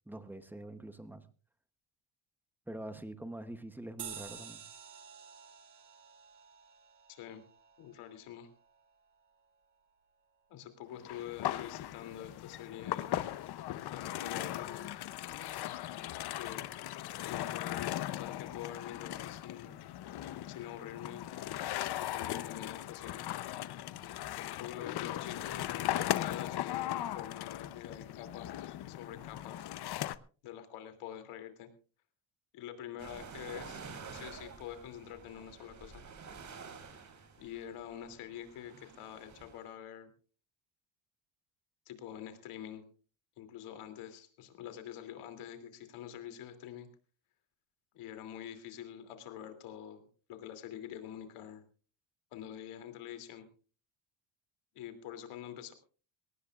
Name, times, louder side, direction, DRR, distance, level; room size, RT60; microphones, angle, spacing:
voice 1, 0.1-1.2 2.7-4.6, right 1 dB, 5° right, 10 dB, 0.8 m, -45 dB
sound 1, 4.0-8.9, right 8 dB, 50° right, 3.1 m, -50 dB
voice 2, 7.1-7.4 7.8-8.5 10.5-13.1 13.9-14.9 16.2-16.6 17.2-19.8 20.4-21.2 22.0-23.2 24.6-29.7 30.4-31.7 32.5-36.0 37.4-40.1 41.9-42.8 43.4-46.9 47.9-51.6 52.3-53.5 54.7-55.7, left 10 dB, 85° left, 7 dB, 2.9 m, -46 dB
sound 2, 11.0-30.2, left 13 dB, 50° left, 0.7 m, -38 dB
sound 3, 33.0-39.6, right 5 dB, 35° right, 3.0 m, -49 dB
22.0 x 18.0 x 2.4 m, 0.38 s
cardioid pair, 175°, 50 cm